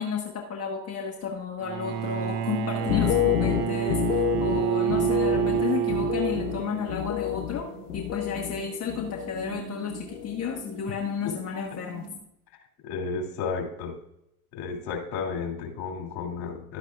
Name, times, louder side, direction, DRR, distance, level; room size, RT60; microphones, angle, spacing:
voice 1, 0.0-7.7 7.9-12.1, left 6 dB, 35° left, 1 dB, 1.5 m, -32 dB
Bowed string instrument, 1.6-6.9, right 9 dB, 55° right, 1.0 m, -28 dB
sound 1, 2.0-12.2, right 5 dB, 85° right, 2.8 m, -43 dB
sound 2, 2.8-8.6 8.9-9.6 9.9-10.4, left 13 dB, 80° left, 0.9 m, -29 dB
voice 2, 12.8-14.0 14.5-16.8, left 5 dB, 55° left, 2 dB, 2.8 m, -32 dB
12.0 x 9.8 x 2.4 m, 0.78 s
hypercardioid pair, 75°, 45 cm